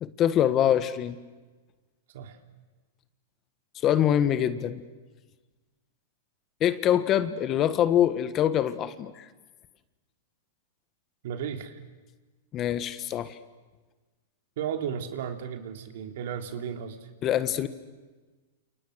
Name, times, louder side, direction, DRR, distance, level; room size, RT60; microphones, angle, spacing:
voice 1, 0.0-1.2 3.8-4.8 6.6-9.3 12.5-13.4 17.2-17.7, left 10 dB, 30° left, 12 dB, 1.5 m, -24 dB
voice 2, 11.2-11.8 14.6-17.1, right 8 dB, 65° right, 6 dB, 3.1 m, -34 dB
29.5 x 28.5 x 6.4 m, 1.3 s
hypercardioid pair, 140°, 0 cm